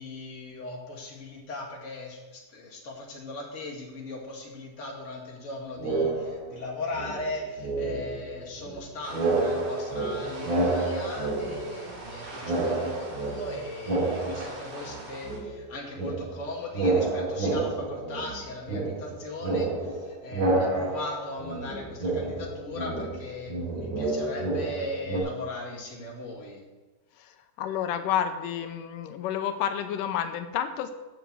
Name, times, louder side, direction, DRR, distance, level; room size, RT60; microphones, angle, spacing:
voice 1, 0.0-26.6, left 2 dB, 25° left, -2 dB, 1.9 m, -38 dB
sound 1, 5.8-6.6 6.9-8.8 9.1-12.1 12.4-15.0 15.2-25.2, right 2 dB, 55° right, 3.4 m, -29 dB
sound 2, 9.0-15.4, right 2 dB, 75° right, 4.5 m, -43 dB
voice 2, 27.6-30.9, left 9 dB, 85° left, 8 dB, 2.3 m, -30 dB
8.0 x 7.0 x 7.7 m, 1.2 s
omnidirectional pair, 3.7 m